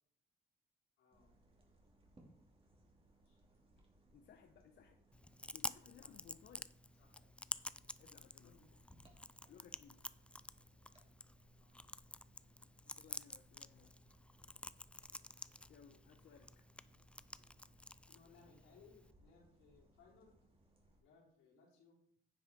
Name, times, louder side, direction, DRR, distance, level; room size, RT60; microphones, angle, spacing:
voice 1, 1.0-1.3 3.2-3.4 6.0-6.2 7.0-7.1 7.8-8.1 8.4-8.9 11.5-13.1 18.1-20.4 21.0-22.0, left 4 dB, 90° left, -3 dB, 3.8 m, -67 dB
sound 1, 1.1-21.0, right 1 dB, 30° right, 2.6 m, -69 dB
voice 2, 4.1-5.0 5.5-6.7 8.0-8.6 9.5-10.0 13.0-14.0 15.7-16.7, left 7 dB, 60° left, 5 dB, 0.8 m, -62 dB
Chewing mastication, 5.1-19.1, left 1 dB, 5° left, 0.3 m, -51 dB
9.7 x 7.5 x 3.6 m, 0.66 s
cardioid pair, 90°, 20 cm